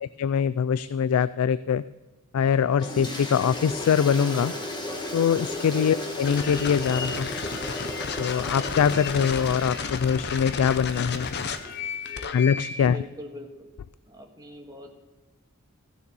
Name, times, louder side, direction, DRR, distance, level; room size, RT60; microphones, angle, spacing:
voice 1, 0.0-1.8 2.3-4.5 5.1-7.3 8.2-11.3 12.3-13.0, left 7 dB, 85° left, 16 dB, 0.3 m, -23 dB
Toilet flush, 2.8-12.1, left 1 dB, 20° left, 1.4 m, -35 dB
voice 2, 5.6-6.1 12.8-13.7 14.1-14.9, left 1 dB, 20° right, 1 dB, 1.7 m, -42 dB
sound 1, 6.2-12.9, left 5 dB, 50° left, 0.7 m, -33 dB
15.0 x 6.7 x 5.4 m, 1.2 s
head